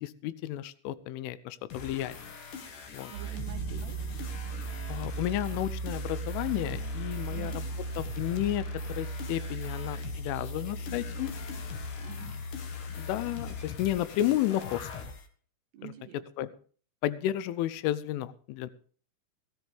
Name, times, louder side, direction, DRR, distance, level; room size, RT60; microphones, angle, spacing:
voice 1, 0.0-2.2 2.9-3.1 4.9-7.7 8.0-11.3 13.0-15.1 15.8-15.9 16.4-16.5 17.0-18.7, left 13 dB, 85° left, 16 dB, 3.3 m, -32 dB
sound 1, 1.7-15.3, left 5 dB, 60° left, 2.2 m, -44 dB
sound 2, 3.1-13.7, right 2 dB, 50° right, 2.4 m, -37 dB
voice 2, 3.1-4.2 7.3-7.7 12.0-12.4 15.7-16.5, right 14 dB, 75° right, 6 dB, 2.7 m, -47 dB
sound 3, 3.5-7.7, equal, 25° left, 2.2 m, -47 dB
17.5 x 13.5 x 3.4 m, 0.43 s
omnidirectional pair, 5.5 m